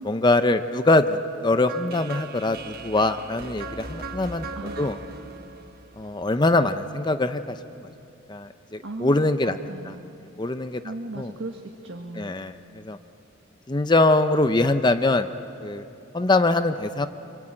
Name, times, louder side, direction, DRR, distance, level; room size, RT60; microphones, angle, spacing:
voice 1, 0.0-4.5 4.8-5.0 6.0-7.9 8.3-9.6 10.4-10.8 11.2-11.3 12.2-13.0 13.7-15.3 15.6-15.9 16.1-17.1, left 2 dB, 20° left, 10 dB, 0.6 m, -23 dB
sound 1, 1.7-6.7, right 3 dB, 50° right, 1.4 m, -38 dB
voice 2, 4.5-5.0 8.8-10.1 10.8-12.3, right 2 dB, 70° right, 2 dB, 1.6 m, -37 dB
26.5 x 25.5 x 8.8 m, 2.7 s
head